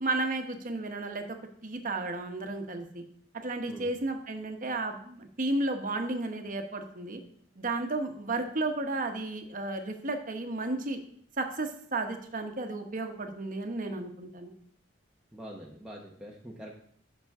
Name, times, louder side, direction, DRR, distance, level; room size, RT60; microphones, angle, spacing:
voice 1, 0.0-1.2 1.6-3.0 3.4-7.2 7.6-11.0 11.4-14.5, right 2 dB, 45° right, 5 dB, 1.1 m, -33 dB
voice 2, 15.3-16.7, equal, 5° right, -3 dB, 1.0 m, -44 dB
14.0 x 6.0 x 3.6 m, 0.62 s
head